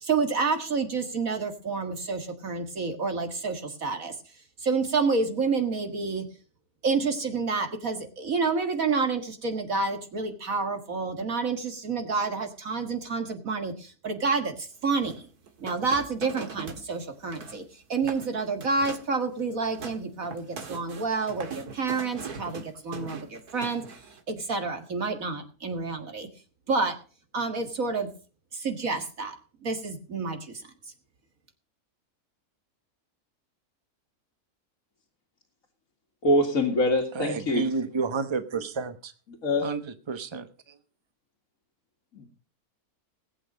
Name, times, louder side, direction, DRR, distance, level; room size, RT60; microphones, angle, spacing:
voice 1, 0.0-4.2 4.6-6.3 6.8-15.3 15.6-17.6 17.9-23.8 24.3-26.3 26.7-26.9 27.3-28.1 28.5-29.4 29.6-30.6, right 4 dB, 65° right, 5 dB, 2.2 m, -29 dB
sound 1, 15.0-16.9 17.1-17.6 18.0-18.3 18.6-19.1 19.5-24.2, right 5 dB, 90° right, 2.3 m, -41 dB
voice 2, 36.2-37.6 39.4-39.7 42.1-42.3, left 1 dB, 60° left, 0 dB, 2.4 m, -24 dB
voice 3, 37.1-39.1 39.6-40.8, right 4 dB, 20° right, 11 dB, 0.9 m, -31 dB
19.0 x 8.8 x 5.3 m, 0.38 s
omnidirectional pair, 1.6 m